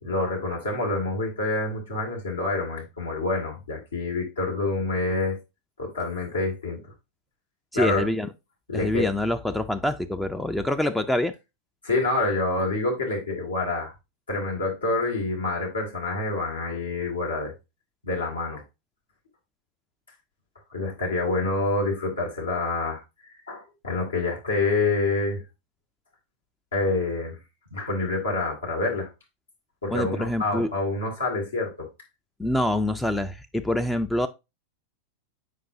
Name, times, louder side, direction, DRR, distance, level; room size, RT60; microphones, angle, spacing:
voice 1, 0.0-5.4 5.8-6.8 7.7-8.0 8.7-9.1 11.8-13.9 14.3-17.5 18.0-18.6 20.7-25.4 26.7-27.4 27.7-29.1 29.8-31.9, left 2 dB, 70° left, 2.4 m, -27 dB
voice 2, 7.7-8.3 8.7-11.3 29.9-30.7 32.4-34.3, left 1 dB, 5° left, 0.4 m, -25 dB
7.6 x 5.1 x 2.8 m
figure-of-eight pair, 90°, 0 cm